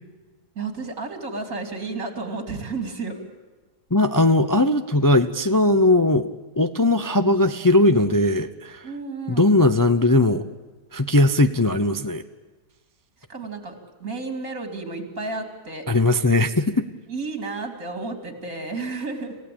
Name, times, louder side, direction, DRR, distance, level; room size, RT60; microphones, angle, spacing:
voice 1, 0.5-3.2 8.8-9.5 13.3-15.8 17.1-19.4, right 3 dB, 55° right, 5 dB, 3.4 m, -32 dB
voice 2, 3.9-6.3 6.6-8.9 9.3-10.4 10.9-12.2 15.9-16.8, left 2 dB, 25° left, 9 dB, 0.5 m, -19 dB
27.5 x 16.5 x 8.7 m, 1.3 s
omnidirectional pair, 1.7 m